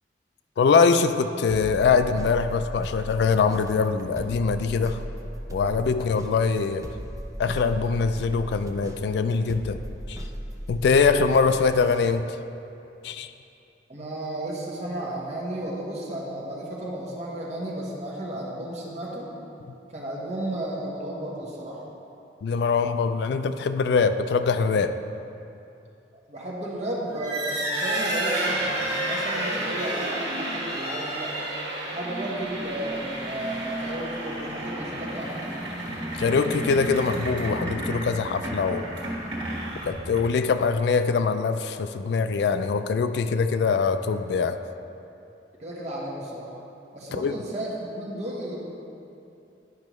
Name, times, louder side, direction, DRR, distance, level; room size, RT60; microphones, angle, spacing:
voice 1, 0.6-5.0 5.5-6.9 7.4-9.8 10.1-10.2 10.7-12.3 13.0-13.3 22.4-24.9 36.2-38.9 39.9-44.6 47.1-47.3, left 5 dB, 65° left, 10 dB, 0.3 m, -23 dB
sound 1, 1.5-12.2, equal, 20° right, 0.5 m, -37 dB
voice 2, 13.9-19.3 19.9-21.8 26.3-31.4 31.9-35.3 45.6-46.5 46.9-48.6, right 1 dB, 40° right, -4 dB, 1.3 m, -33 dB
sound 2, 27.1-40.5, right 1 dB, 75° right, 1.6 m, -31 dB
10.5 x 5.3 x 3.1 m, 2.7 s
head